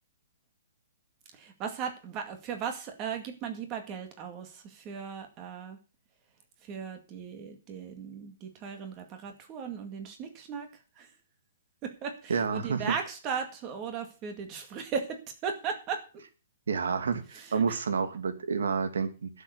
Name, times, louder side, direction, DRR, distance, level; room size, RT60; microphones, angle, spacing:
voice 1, 1.3-5.8 6.6-10.7 11.0-11.1 11.8-16.0 17.3-17.8, right 6 dB, 15° right, 6 dB, 2.1 m, -37 dB
voice 2, 12.3-12.9 16.7-19.3, right 5 dB, 85° right, 9 dB, 2.6 m, -29 dB
12.0 x 7.0 x 8.2 m, 0.34 s
hypercardioid pair, 180°, 0 cm